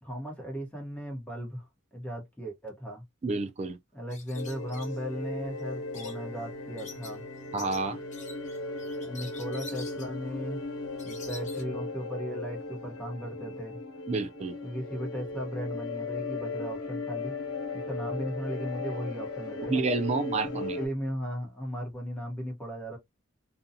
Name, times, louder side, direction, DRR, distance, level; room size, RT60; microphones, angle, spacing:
voice 1, 0.0-1.6 1.9-3.0 3.9-7.2 9.0-10.6 11.0-13.8 14.6-17.3 17.7-19.7 20.4-23.0, equal, 10° left, 0.9 m, -36 dB
voice 2, 3.2-3.8 7.5-8.0 14.1-14.6 19.7-20.8, right 3 dB, 35° right, 0.3 m, -29 dB
sound 1, 4.1-11.6, left 4 dB, 35° left, 0.9 m, -48 dB
sound 2, 4.3-20.9, left 3 dB, 85° left, 0.6 m, -37 dB
sound 3, 5.5-11.8, right 1 dB, 85° right, 0.8 m, -49 dB
2.5 x 2.2 x 2.6 m
head